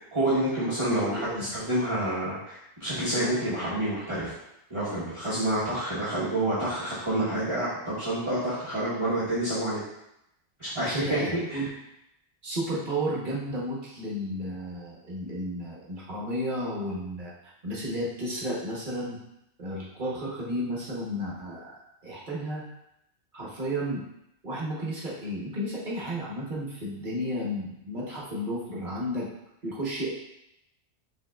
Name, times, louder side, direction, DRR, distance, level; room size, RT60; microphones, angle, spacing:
voice 1, 0.1-4.3 4.7-9.8 10.6-11.2 11.5-11.6, right 1 dB, 30° right, -13 dB, 1.2 m, -28 dB
voice 2, 0.8-1.5 10.9-11.7 12.4-17.3 17.6-19.2 19.6-21.8 22.0-22.6 23.3-24.0 24.4-29.3 29.6-30.2, equal, 50° right, -5 dB, 1.2 m, -32 dB
5.5 x 3.6 x 2.3 m, 0.83 s
omnidirectional pair, 1.1 m